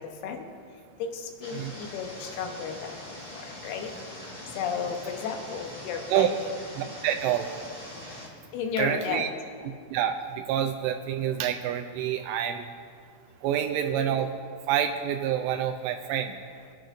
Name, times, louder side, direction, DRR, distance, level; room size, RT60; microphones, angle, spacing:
voice 1, 1.0-2.9 3.3-3.9 4.6-6.5 8.5-9.3, left 6 dB, 75° left, 4 dB, 2.4 m, -33 dB
sound 1, 1.4-8.3, left 1 dB, 25° left, 1.0 m, -43 dB
voice 2, 6.8-7.5 8.8-9.3 9.6-12.6 13.4-14.3 14.7-16.4, right 10 dB, 85° right, 4 dB, 3.0 m, -27 dB
26.0 x 9.1 x 2.5 m, 2.2 s
omnidirectional pair, 5.5 m